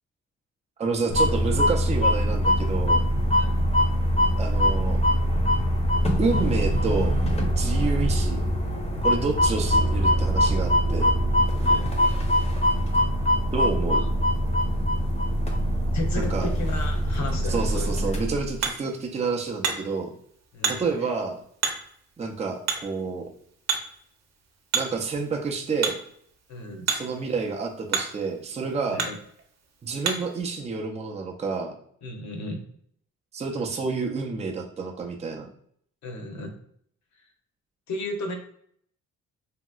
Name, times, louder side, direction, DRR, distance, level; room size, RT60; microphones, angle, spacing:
voice 1, 0.8-3.0 4.4-5.0 6.2-7.2 7.4-8.4 9.0-11.1 13.5-14.0 16.2-16.5 17.5-20.1 20.7-21.4 22.2-23.3 24.7-26.0 26.9-29.0 29.8-31.7 33.3-35.5, right 4 dB, 20° right, 1 dB, 0.5 m, -29 dB
sound 1, 1.1-18.6, equal, 20° left, 0.7 m, -23 dB
voice 2, 3.4-3.7 7.7-7.9 9.2-9.3 11.6-12.0 14.0-14.1 15.9-18.0 20.5-20.9 26.5-26.9 28.9-29.2 32.0-32.6 36.0-36.5 37.9-38.3, left 2 dB, 70° left, 3 dB, 0.9 m, -34 dB
Hammer, 17.7-30.4, right 5 dB, 60° right, 0.8 m, -34 dB
2.9 x 2.8 x 2.3 m, 0.64 s
cardioid pair, 90°, 30 cm